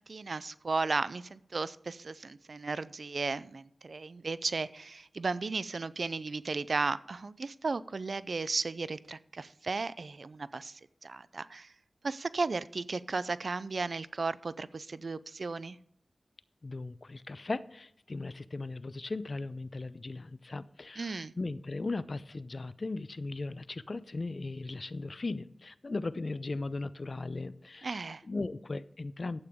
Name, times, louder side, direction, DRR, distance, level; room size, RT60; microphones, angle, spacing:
voice 1, 0.0-11.7 12.0-15.8 21.0-21.3 27.8-28.2, right 3 dB, 70° right, 17 dB, 0.4 m, -35 dB
voice 2, 16.6-28.0 28.3-29.4, left 3 dB, 55° left, 16 dB, 0.5 m, -37 dB
11.5 x 8.6 x 3.6 m, 0.71 s
cardioid pair, 45°, 0 cm